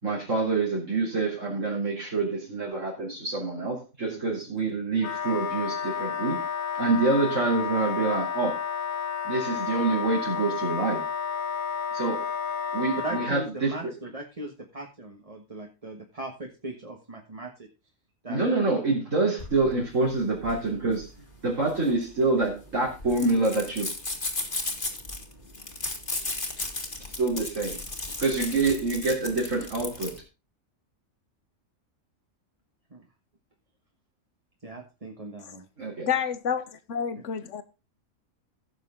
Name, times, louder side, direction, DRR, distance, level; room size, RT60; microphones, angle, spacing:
voice 1, 0.0-6.5 6.8-8.6 9.2-11.0 11.9-12.3 12.7-13.9 18.3-21.1 21.4-23.9 27.2-27.8 28.2-30.2 35.8-36.1, right 3 dB, 65° right, 3.8 m, -26 dB
voice 2, 4.1-4.4 13.0-17.5 18.2-18.4 32.9-33.1 34.6-35.6 37.2-37.3, right 2 dB, 25° right, 1.5 m, -39 dB
Wind instrument woodwind instrument, 5.0-13.3, left 7 dB, 80° left, 1.3 m, -31 dB
sound 1, 19.4-30.2, left 2 dB, 35° left, 2.3 m, -35 dB
voice 3, 36.0-37.6, left 7 dB, 60° left, 1.3 m, -29 dB
16.0 x 6.9 x 3.8 m
omnidirectional pair, 1.4 m